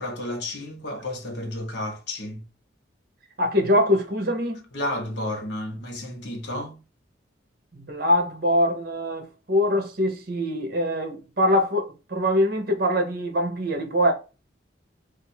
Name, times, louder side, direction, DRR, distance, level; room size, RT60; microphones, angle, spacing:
voice 1, 0.0-2.4 4.7-6.8, left 1 dB, 65° left, 1.0 m, -32 dB
voice 2, 3.4-4.6 7.7-14.1, left 1 dB, 55° right, 0.9 m, -23 dB
2.6 x 2.5 x 4.2 m
head